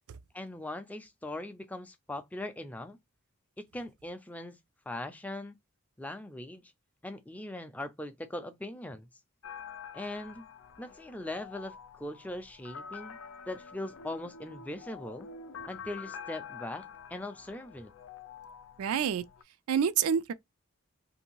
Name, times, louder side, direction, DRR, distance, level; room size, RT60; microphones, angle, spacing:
voice 1, 0.3-3.0 3.6-4.6 4.9-5.6 6.0-6.6 7.0-9.1 9.9-10.4 10.8-13.2 13.5-15.3 15.7-17.9, left 1 dB, 5° left, 0.4 m, -40 dB
sound 1, 9.4-19.4, left 6 dB, 70° left, 0.4 m, -47 dB
voice 2, 18.8-19.2 19.7-20.3, right 8 dB, 90° right, 0.4 m, -27 dB
2.7 x 2.6 x 2.9 m
head